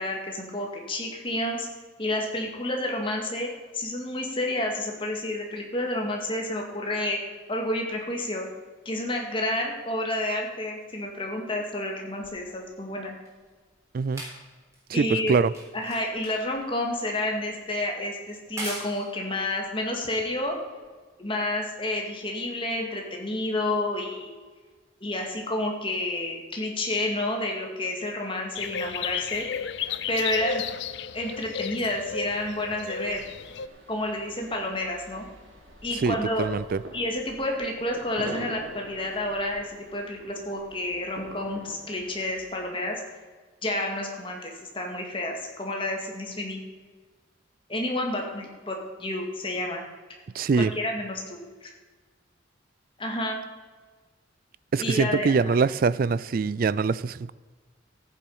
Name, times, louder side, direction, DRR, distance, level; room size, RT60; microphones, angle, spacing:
voice 1, 0.0-1.7 2.0-7.2 7.5-8.5 8.9-13.1 14.9-15.4 15.7-20.6 21.2-24.3 25.0-29.5 30.1-30.7 31.1-33.2 33.9-35.3 35.8-36.5 36.9-43.0 43.6-46.6 47.7-49.8 50.6-51.7 53.0-53.4 54.8-55.6, left 1 dB, 25° left, 2.1 m, -30 dB
sound 1, 12.2-20.8 21.7-21.8, right 1 dB, 15° right, 3.8 m, -43 dB
voice 2, 14.9-15.5 36.0-36.8 50.3-50.7 54.7-57.3, right 4 dB, 45° right, 0.3 m, -24 dB
sound 2, 28.6-33.7, left 7 dB, 60° left, 0.5 m, -33 dB
sound 3, 32.3-42.4, equal, 85° right, 2.9 m, -45 dB
14.5 x 7.6 x 5.5 m
head